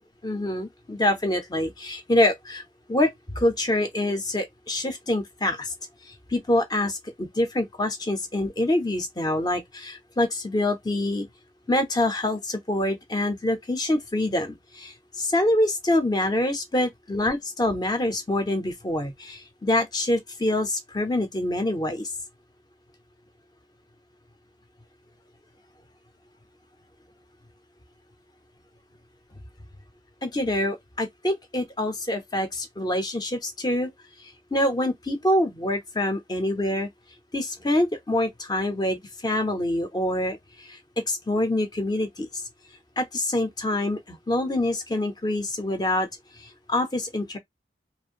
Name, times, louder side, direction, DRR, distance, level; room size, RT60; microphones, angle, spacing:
voice 1, 0.2-2.6 2.9-3.1 3.4-5.7 6.3-11.3 11.7-22.1 30.2-33.9 34.5-36.9 37.3-40.8 41.1-42.3 43.0-46.1 46.4-47.4, left 1 dB, 25° left, 0.6 m, -25 dB
2.5 x 2.1 x 2.6 m
head